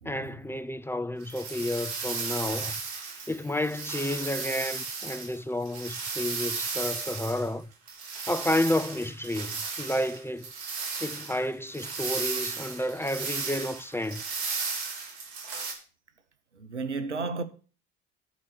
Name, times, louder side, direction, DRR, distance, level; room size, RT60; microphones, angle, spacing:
voice 1, 0.0-2.8 3.3-7.7 8.3-10.5 11.0-14.2, left 1 dB, 5° left, 0.5 m, -31 dB
sound 1, 1.2-3.3 3.6-7.5 7.9-15.7, right 5 dB, 70° right, 2.0 m, -35 dB
voice 2, 2.0-2.4 3.0-3.3 16.5-17.4, right 4 dB, 90° right, 0.7 m, -35 dB
11.0 x 5.0 x 7.4 m
figure-of-eight pair, 55°, 34 cm